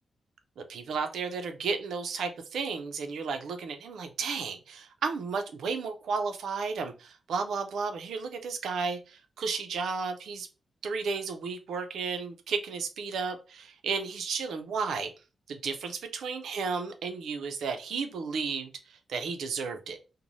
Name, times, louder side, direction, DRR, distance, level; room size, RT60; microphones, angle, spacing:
voice 1, 0.6-10.5 10.8-15.1 15.5-18.7 19.1-20.0, right 5 dB, 85° right, 7 dB, 0.5 m, -33 dB
2.6 x 2.1 x 3.1 m, 0.31 s
wide cardioid pair, 150°, 0 cm